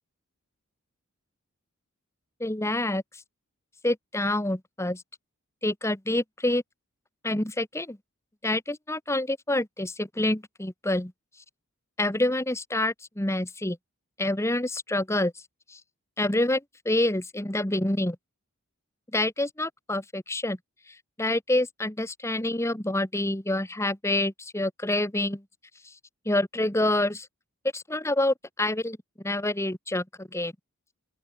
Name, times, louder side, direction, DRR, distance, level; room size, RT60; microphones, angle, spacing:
voice 1, 2.4-3.0 3.8-5.0 5.6-6.6 7.2-8.0 8.4-11.1 12.0-13.8 14.2-15.3 15.7-15.8 16.2-18.2 19.1-20.6 21.2-25.4 26.2-27.3 27.7-29.0 29.2-30.5, left 1 dB, 10° left, 1.5 m, -27 dB
open air
head